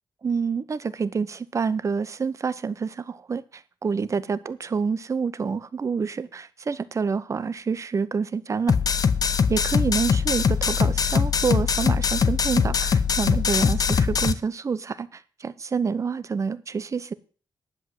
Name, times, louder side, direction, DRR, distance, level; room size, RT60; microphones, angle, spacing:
voice 1, 0.2-8.8 9.5-17.1, right 5 dB, 40° right, 16 dB, 0.8 m, -27 dB
sound 1, 8.7-14.3, left 6 dB, 50° left, 0.7 m, -22 dB
10.5 x 7.7 x 7.7 m, 0.40 s
wide cardioid pair, 125°, 8 cm